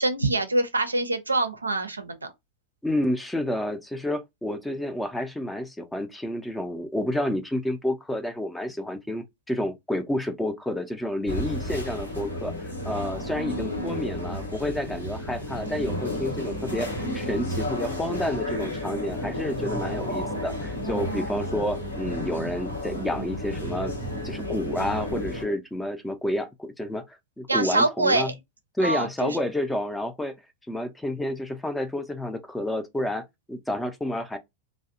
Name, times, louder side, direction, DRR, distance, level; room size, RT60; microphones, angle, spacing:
voice 1, 0.0-2.2 13.3-14.0 27.5-28.3 28.8-29.4, right 2 dB, 80° right, 0.4 m, -25 dB
voice 2, 2.8-23.9 24.2-28.3 28.8-30.4 30.7-34.4, left 1 dB, 5° left, 0.4 m, -30 dB
sound 1, 11.3-25.4, left 1 dB, 80° left, 0.9 m, -32 dB
2.6 x 2.0 x 2.4 m
figure-of-eight pair, 90°, 0 cm